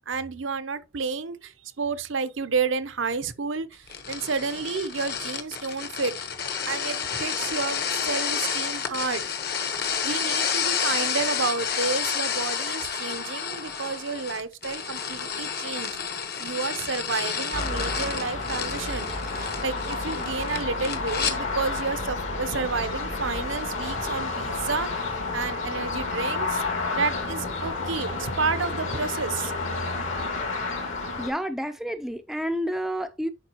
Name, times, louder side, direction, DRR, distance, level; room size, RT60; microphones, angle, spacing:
voice 1, 0.1-6.2 6.7-9.3 10.0-16.0 16.4-26.6 26.9-29.5, right 4 dB, 70° right, 0.7 m, -30 dB
sound 1, 3.9-21.4, left 7 dB, 50° left, 1.1 m, -30 dB
sound 2, 17.5-31.3, left 3 dB, 75° left, 2.6 m, -30 dB
voice 2, 31.2-33.3, equal, ahead, 0.4 m, -29 dB
10.5 x 4.8 x 2.9 m
head